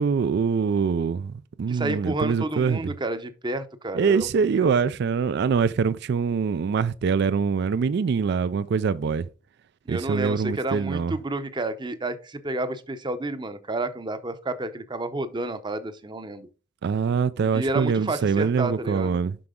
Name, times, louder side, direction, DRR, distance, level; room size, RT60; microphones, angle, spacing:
voice 1, 0.0-1.3 1.6-2.9 3.9-9.3 9.9-11.1 16.8-19.4, right 5 dB, 60° right, 0.3 m, -24 dB
voice 2, 1.7-4.3 9.9-16.5 17.4-19.2, right 2 dB, 25° right, 0.7 m, -30 dB
7.6 x 5.9 x 3.7 m
head